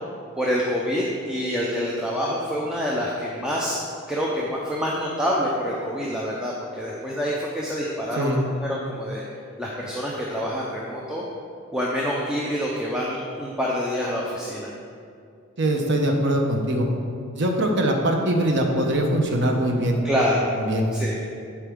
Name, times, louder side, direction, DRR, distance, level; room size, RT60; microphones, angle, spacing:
voice 1, 0.4-3.8 4.1-9.2 9.6-11.2 11.7-14.7 20.0-20.5 20.9-21.2, equal, 5° right, -5 dB, 0.5 m, -26 dB
voice 2, 15.6-16.9 17.3-20.0 20.5-20.9, right 1 dB, 55° right, 2 dB, 0.9 m, -22 dB
10.0 x 4.8 x 3.6 m, 2.4 s
head